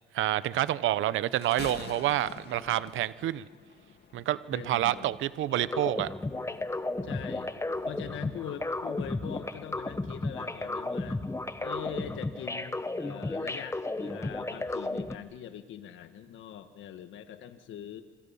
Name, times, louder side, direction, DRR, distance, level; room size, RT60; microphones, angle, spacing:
voice 1, 0.1-3.5 4.1-6.1, right 13 dB, 80° right, 16 dB, 0.9 m, -28 dB
Thunder, 1.2-8.5, left 7 dB, 55° left, 1.8 m, -49 dB
voice 2, 4.5-5.1 7.0-7.5 7.9-11.2 11.6-18.0, left 9 dB, 80° left, 9 dB, 1.4 m, -42 dB
sound 1, 5.5-15.2, left 2 dB, 15° left, 1.2 m, -34 dB
26.5 x 24.5 x 5.6 m, 1.4 s
cardioid pair, 90°, 20 cm